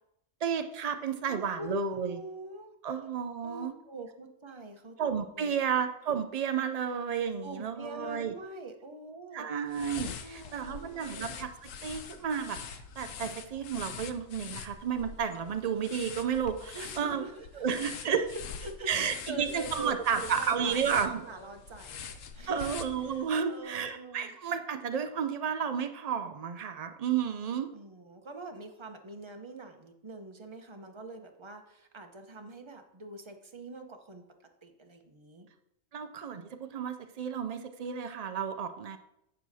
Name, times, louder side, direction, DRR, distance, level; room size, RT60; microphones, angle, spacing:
voice 1, 0.4-2.2 2.8-3.7 5.0-8.3 9.3-17.2 17.6-18.2 18.9-21.2 22.5-27.7 35.9-39.0, right 7 dB, 85° right, 8 dB, 0.3 m, -32 dB
voice 2, 1.3-2.7 3.4-5.0 5.3-5.5 7.4-9.5 10.2-11.4 16.7-23.2 23.5-24.3 27.7-34.2 34.6-35.5, right 2 dB, 25° right, 4 dB, 0.8 m, -44 dB
sound 1, 9.7-23.4, left 7 dB, 90° left, 1.1 m, -44 dB
11.0 x 7.8 x 2.7 m, 0.84 s
omnidirectional pair, 1.3 m